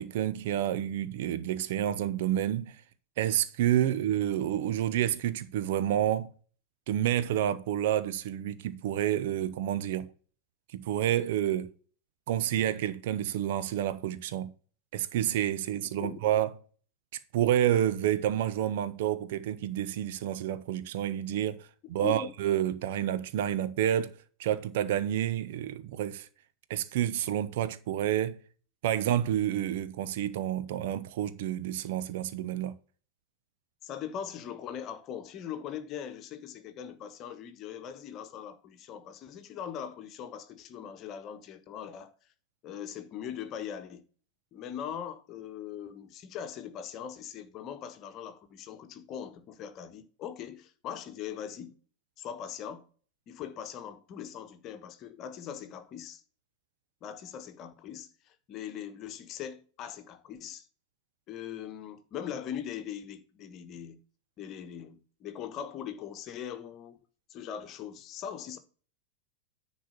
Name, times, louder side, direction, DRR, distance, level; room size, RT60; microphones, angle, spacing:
voice 1, 0.0-2.8 3.2-6.3 6.9-10.1 10.7-11.7 12.3-14.5 14.9-16.5 17.3-24.1 24.4-26.3 26.7-28.4 28.8-32.7, right 11 dB, 55° right, 0.8 m, -29 dB
voice 2, 33.8-42.1 42.6-44.0 44.5-51.8 52.2-52.9 53.3-56.2 57.0-60.6 61.3-64.0 64.4-67.0 67.3-68.6, left 9 dB, 35° left, 1.2 m, -41 dB
10.0 x 4.2 x 6.3 m
figure-of-eight pair, 90°, 0 cm